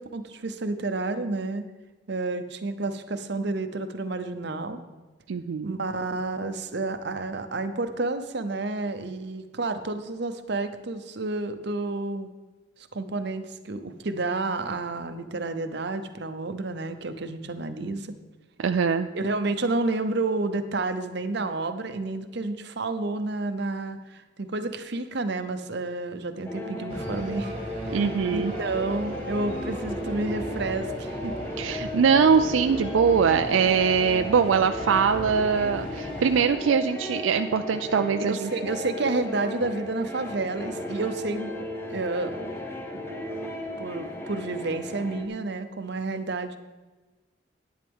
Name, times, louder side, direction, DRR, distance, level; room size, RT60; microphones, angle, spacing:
voice 1, 0.0-1.6 2.1-4.8 5.6-12.3 12.9-18.1 19.1-27.5 27.8-28.0 28.3-31.3 38.3-41.5 41.9-42.4 42.9-43.0 43.8-46.6, right 3 dB, 60° right, 9 dB, 0.8 m, -30 dB
voice 2, 5.3-5.8 18.6-19.1 27.9-28.5 31.6-38.5, right 6 dB, 90° right, 8 dB, 0.4 m, -22 dB
sound 1, 26.5-45.3, left 1 dB, 15° left, 0.9 m, -35 dB
sound 2, 26.9-36.5, equal, 30° right, 1.5 m, -40 dB
11.0 x 9.7 x 3.6 m, 1.2 s
head